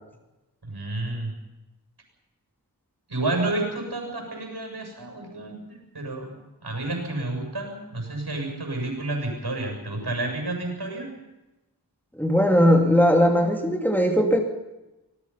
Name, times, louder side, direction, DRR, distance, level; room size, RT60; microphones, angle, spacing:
voice 1, 0.6-1.3 3.1-6.3 6.6-11.1, right 2 dB, 75° right, 3 dB, 7.3 m, -30 dB
voice 2, 12.2-14.4, equal, 5° left, 2 dB, 2.5 m, -19 dB
25.5 x 19.5 x 5.7 m, 1.0 s
wide cardioid pair, 45°, 39 cm